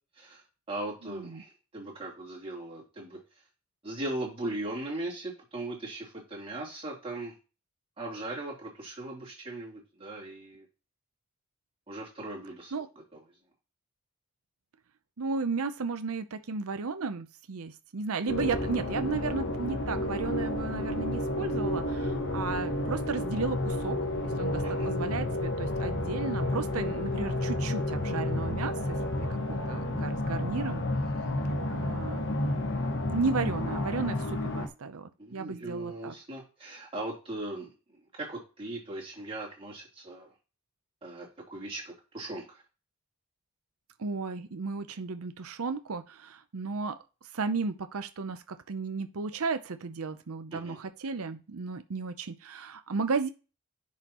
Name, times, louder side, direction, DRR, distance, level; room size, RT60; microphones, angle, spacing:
voice 1, 0.1-3.2 3.8-7.3 8.0-10.6 11.9-12.7 13.1-13.2 24.6-24.9 35.2-40.3 41.0-42.6 50.5-50.8, right 2 dB, 25° right, -4 dB, 3.2 m, -39 dB
voice 2, 15.2-24.0 24.2-30.8 31.7-32.3 33.1-36.1 44.0-47.0 47.3-53.3, right 4 dB, 75° right, 9 dB, 0.6 m, -34 dB
sound 1, 18.3-34.7, left 1 dB, 55° left, 1.1 m, -31 dB
10.0 x 5.7 x 3.0 m, 0.32 s
head